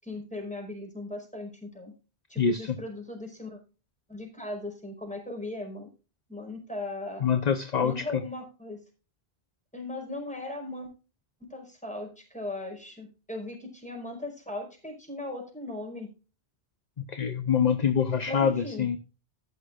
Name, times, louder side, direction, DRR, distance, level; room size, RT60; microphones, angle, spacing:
voice 1, 0.0-1.9 2.3-3.6 4.1-5.9 6.3-7.2 7.8-8.8 9.7-10.9 11.4-16.1 18.3-18.9, left 2 dB, 5° left, 5.3 m, -38 dB
voice 2, 2.4-2.8 7.2-8.2 17.0-19.0, left 7 dB, 45° left, 0.9 m, -25 dB
14.5 x 11.5 x 2.5 m
omnidirectional pair, 1.0 m